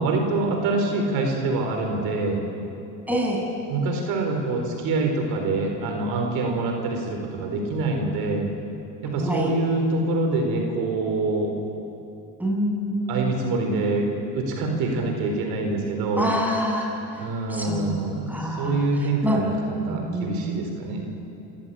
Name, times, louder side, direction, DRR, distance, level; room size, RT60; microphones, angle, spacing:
voice 1, 0.0-2.4 3.7-8.4 9.0-11.5 13.1-14.1 14.3-16.3 17.2-21.0, right 3 dB, 75° right, 3 dB, 4.2 m, -25 dB
voice 2, 3.1-3.4 9.2-9.5 12.4-13.3 16.2-16.9 17.5-19.4 19.9-20.5, equal, 5° right, -1 dB, 7.7 m, -26 dB
27.5 x 16.0 x 8.9 m, 2.8 s
supercardioid pair, 85°, 36 cm